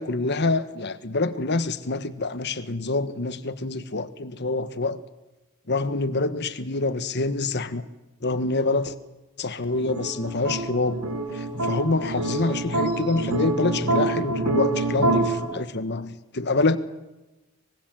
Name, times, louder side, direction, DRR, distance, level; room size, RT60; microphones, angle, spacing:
voice 1, 0.0-5.0 5.7-7.9 8.2-8.9 9.4-11.0 11.3-16.8, left 3 dB, 50° left, 1.3 m, -26 dB
sound 1, 9.7-15.5, right 2 dB, 80° right, 7.2 m, -26 dB
25.0 x 21.0 x 7.7 m
head